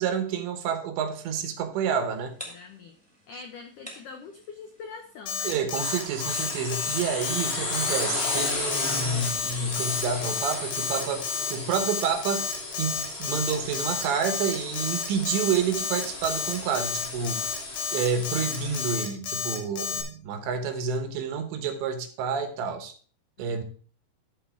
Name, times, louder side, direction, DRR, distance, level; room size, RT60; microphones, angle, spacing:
voice 1, 0.0-2.3 5.4-11.2 11.5-17.6 17.9-22.9 23.4-23.6, right 6 dB, 90° right, 7 dB, 3.4 m, -29 dB
sound 1, 1.9-10.9, equal, 5° left, 1.0 m, -51 dB
voice 2, 2.5-3.0 3.3-5.6 23.4-23.6, left 5 dB, 90° left, 5 dB, 1.8 m, -44 dB
Alarm, 5.3-20.0, left 6 dB, 60° left, 2.6 m, -31 dB
sound 2, 5.7-18.9, left 2 dB, 35° left, 2.1 m, -34 dB
13.0 x 4.4 x 4.5 m, 0.43 s
omnidirectional pair, 5.0 m